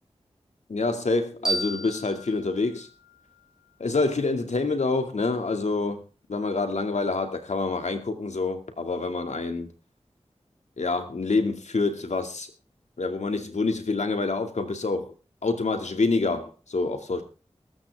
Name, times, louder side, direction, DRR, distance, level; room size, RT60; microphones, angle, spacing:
voice 1, 0.7-2.9 3.8-6.0 6.3-9.7 10.8-12.5 13.0-15.1 15.4-17.2, left 3 dB, 90° left, 2.5 m, -27 dB
sound 1, 1.4-4.2, right 2 dB, 5° right, 7.8 m, -34 dB
21.0 x 12.5 x 3.6 m
wide cardioid pair, 50°, 12 cm